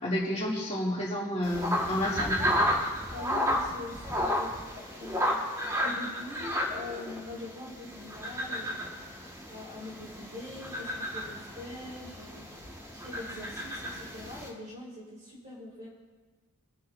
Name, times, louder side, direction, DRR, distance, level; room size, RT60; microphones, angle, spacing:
voice 1, 0.0-2.4, left 1 dB, 30° left, -7 dB, 3.2 m, -30 dB
sound 1, 1.4-14.5, equal, 15° right, 2.0 m, -32 dB
voice 2, 3.1-5.2 5.8-9.0 9.5-12.5 12.9-15.9, left 2 dB, 35° right, -5 dB, 4.7 m, -43 dB
26.5 x 9.5 x 2.9 m, 1.4 s
head